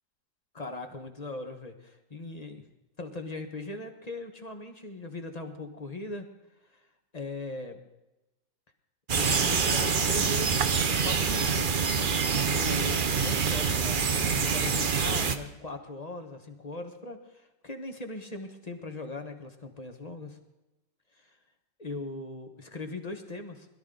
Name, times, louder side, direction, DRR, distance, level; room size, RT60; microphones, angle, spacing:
voice 1, 0.5-2.6 3.0-6.3 6.7-6.9 7.1-7.8 9.1-11.8 12.5-20.4 21.1-21.4 21.8-23.7, left 2 dB, 25° left, 5 dB, 1.3 m, -39 dB
sound 1, 9.1-15.4, right 5 dB, 45° right, 0.7 m, -26 dB
21.5 x 13.0 x 3.9 m, 0.99 s
omnidirectional pair, 1.9 m